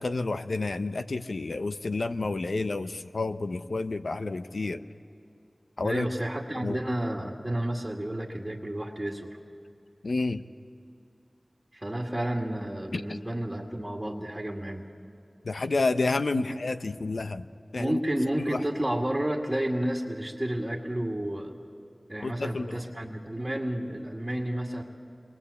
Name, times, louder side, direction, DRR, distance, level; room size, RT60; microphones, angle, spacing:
voice 1, 0.0-4.8 5.8-6.1 6.6-6.8 10.0-10.4 12.9-13.2 15.4-17.5 17.7-18.0 18.5-18.6 22.2-22.8, left 3 dB, 90° left, 9 dB, 0.8 m, -30 dB
voice 2, 5.8-9.4 11.7-14.9 16.3-16.5 17.7-21.5 22.1-24.8, right 1 dB, 15° right, -2 dB, 2.2 m, -31 dB
29.0 x 22.5 x 8.4 m, 2.6 s
wide cardioid pair, 65°, 0 cm